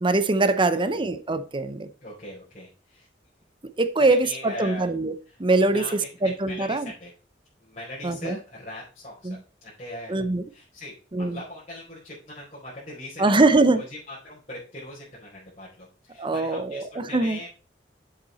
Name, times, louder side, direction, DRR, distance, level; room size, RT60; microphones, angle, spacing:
voice 1, 0.0-1.9 3.8-5.1 5.4-5.8 6.2-6.9 8.0-8.4 9.2-9.4 10.1-10.4 11.1-11.4 13.2-13.8 16.2-17.4, right 2 dB, 30° right, 0.7 m, -22 dB
voice 2, 0.7-1.0 2.0-3.1 4.0-4.9 5.6-7.1 7.6-10.2 10.5-17.5, left 1 dB, 40° left, 4.7 m, -40 dB
7.8 x 6.8 x 4.2 m
head